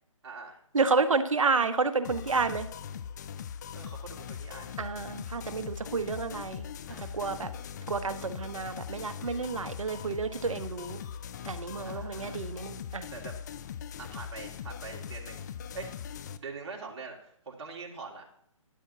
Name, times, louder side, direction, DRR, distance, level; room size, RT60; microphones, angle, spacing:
voice 1, 0.2-0.6 3.7-4.8 6.9-7.7 11.8-12.6 13.1-13.3 14.0-15.4 15.7-15.9 16.4-18.3, right 4 dB, 50° right, 0 dB, 2.3 m, -44 dB
voice 2, 0.7-2.7 4.8-6.7 7.0-7.5 7.9-11.0 11.4-13.1, right 4 dB, 70° right, 10 dB, 1.1 m, -30 dB
sound 1, 2.0-16.4, left 8 dB, 35° left, 0.5 m, -41 dB
12.5 x 10.5 x 2.8 m, 0.71 s
figure-of-eight pair, 145°, 17 cm